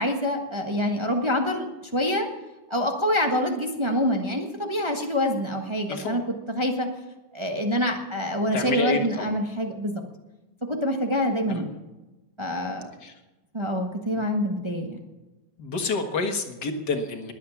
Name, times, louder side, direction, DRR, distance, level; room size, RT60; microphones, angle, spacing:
voice 1, 0.0-1.7 1.9-2.3 2.7-6.2 6.5-6.9 7.3-10.0 10.7-11.8 12.4-12.9 13.5-15.0, equal, 15° right, 3 dB, 1.3 m, -26 dB
voice 2, 5.9-6.2 8.5-9.3 11.5-11.6 13.0-13.1 14.2-14.3 15.6-17.3, left 4 dB, 65° left, 5 dB, 2.2 m, -28 dB
21.5 x 8.3 x 7.1 m, 1.1 s
omnidirectional pair, 2.0 m